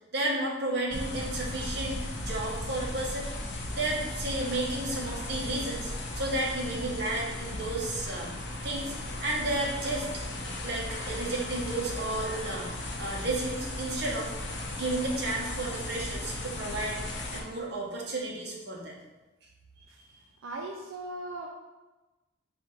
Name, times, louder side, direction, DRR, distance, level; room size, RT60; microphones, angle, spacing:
voice 1, 0.1-3.3 3.7-5.9 6.2-8.9 9.2-10.1 10.6-14.3 14.7-19.0, right 2 dB, 55° right, -2 dB, 0.9 m, -32 dB
sound 1, 0.9-17.4, left 1 dB, 60° left, 0.6 m, -36 dB
voice 2, 20.4-21.5, right 2 dB, 85° right, 0 dB, 0.4 m, -38 dB
4.5 x 2.5 x 3.8 m, 1.1 s
head